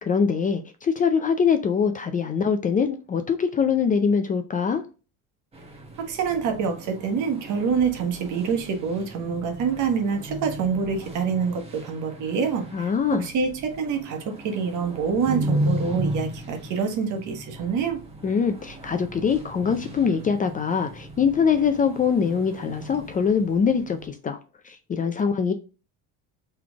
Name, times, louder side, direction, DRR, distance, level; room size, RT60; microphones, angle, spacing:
voice 1, 0.0-4.8 12.7-13.3 18.2-24.4 24.7-25.5, left 6 dB, 25° left, 0.4 m, -23 dB
sound 1, 5.5-24.1, right 1 dB, 15° right, 1.2 m, -35 dB
voice 2, 6.0-18.0, right 6 dB, 60° right, 1.2 m, -26 dB
4.0 x 3.3 x 3.4 m
cardioid pair, 145°, 35 cm